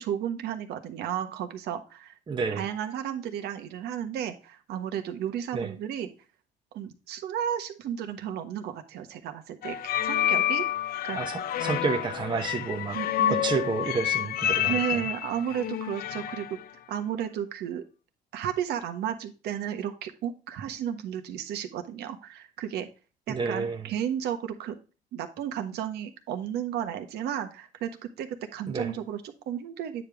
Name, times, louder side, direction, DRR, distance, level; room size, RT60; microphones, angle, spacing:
voice 1, 0.0-2.1 2.5-6.1 6.7-9.8 10.0-10.6 11.0-11.2 12.9-13.4 14.7-16.5 16.9-17.8 18.3-22.9 23.3-24.8 25.1-30.0, right 9 dB, 75° right, 1.3 m, -33 dB
voice 2, 2.3-2.7 5.5-5.7 11.1-13.0 13.3-15.0 23.3-23.8 28.7-28.9, right 5 dB, 30° right, 0.9 m, -30 dB
sound 1, 9.6-16.6, left 11 dB, 60° left, 0.6 m, -29 dB
9.5 x 5.2 x 3.5 m
cardioid pair, 110°, 17 cm